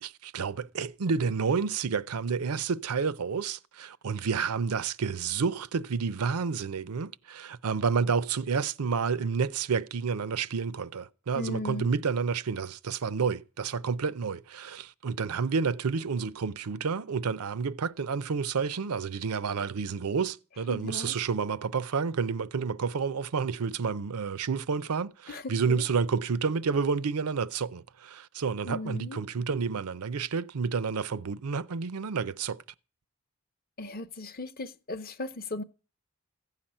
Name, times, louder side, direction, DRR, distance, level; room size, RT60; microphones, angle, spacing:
voice 1, 0.0-32.6, right 5 dB, 85° right, 0.6 m, -30 dB
voice 2, 11.3-11.9 20.7-21.2 25.3-25.8 28.6-29.2 33.8-35.6, left 2 dB, 40° left, 0.6 m, -37 dB
15.0 x 5.8 x 8.8 m
head